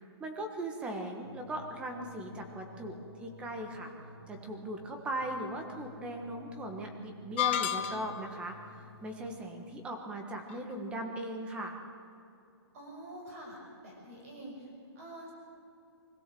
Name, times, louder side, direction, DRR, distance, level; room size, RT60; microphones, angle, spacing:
voice 1, 0.2-3.9 4.3-8.6 9.0-11.8, right 1 dB, 5° right, 4 dB, 1.3 m, -39 dB
sound 1, 1.2-9.3, left 1 dB, 55° right, 6.3 m, -53 dB
sound 2, 7.4-8.4, left 12 dB, 25° left, 0.7 m, -31 dB
voice 2, 12.7-15.3, right 1 dB, 30° right, 0 dB, 6.3 m, -47 dB
24.5 x 16.0 x 7.7 m, 2.6 s
hypercardioid pair, 175°, 14 cm